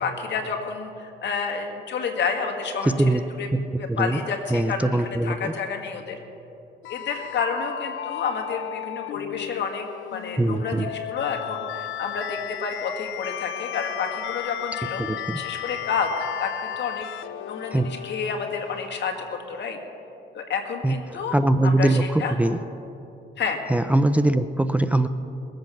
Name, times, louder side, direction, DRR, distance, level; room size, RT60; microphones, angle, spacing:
voice 1, 0.0-2.9 3.4-3.5 3.8-6.2 6.9-15.0 15.3-19.8 20.3-21.3 21.6-22.3 23.4-23.6, left 5 dB, 60° left, 3 dB, 2.0 m, -30 dB
voice 2, 3.9-4.2 4.5-5.5 10.4-10.9 15.1-15.4 17.7-17.9 20.8-22.6 23.7-25.1, right 1 dB, 5° right, 10 dB, 0.4 m, -22 dB
sound 1, 6.8-18.9, left 13 dB, 80° left, 0.5 m, -34 dB
21.5 x 7.8 x 5.9 m, 2.8 s
cardioid pair, 90°, 20 cm